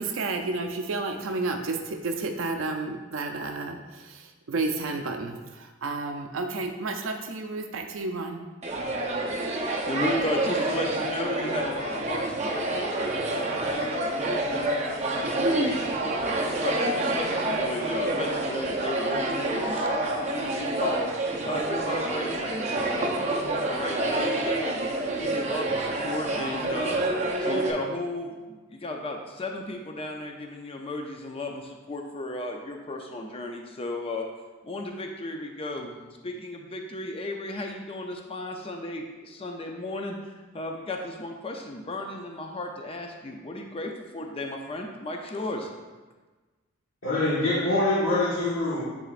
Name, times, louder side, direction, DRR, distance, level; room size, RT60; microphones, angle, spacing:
voice 1, 0.0-8.5, right 3 dB, 75° right, 4 dB, 0.5 m, -31 dB
sound 1, 8.6-27.7, right 2 dB, 35° right, 0.7 m, -28 dB
voice 2, 9.5-14.7 15.1-21.0 21.4-27.0 27.4-34.3 34.6-45.7, left 1 dB, 30° left, 2 dB, 0.5 m, -35 dB
voice 3, 47.0-48.8, left 2 dB, 85° left, -11 dB, 1.6 m, -24 dB
9.9 x 3.8 x 2.5 m, 1.3 s
head